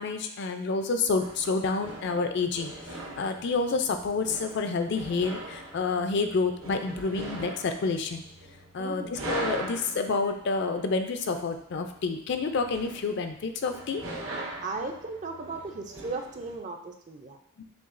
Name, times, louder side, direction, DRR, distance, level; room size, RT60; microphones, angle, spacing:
voice 1, 0.0-8.3 8.7-14.0 17.6-17.7, left 4 dB, 55° left, 7 dB, 0.4 m, -29 dB
sound 1, 1.2-16.6, right 2 dB, 75° right, 1.0 m, -41 dB
voice 2, 8.8-9.1 14.6-17.4, right 3 dB, 35° right, 4 dB, 0.4 m, -36 dB
6.8 x 2.3 x 2.5 m, 0.66 s
head